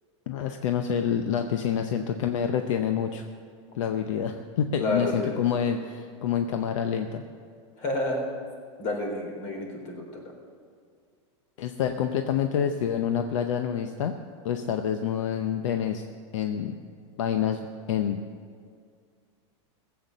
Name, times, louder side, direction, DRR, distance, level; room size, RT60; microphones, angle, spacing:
voice 1, 0.3-3.2 3.7-7.2 11.6-14.1 14.4-16.0 16.3-16.7 17.2-17.6 17.9-18.2, left 8 dB, 80° left, 6 dB, 0.8 m, -27 dB
voice 2, 4.8-5.4 7.8-8.3 8.8-10.2, left 1 dB, 50° left, 1 dB, 3.8 m, -30 dB
16.5 x 7.9 x 6.6 m, 2.1 s
supercardioid pair, 140°, 16 cm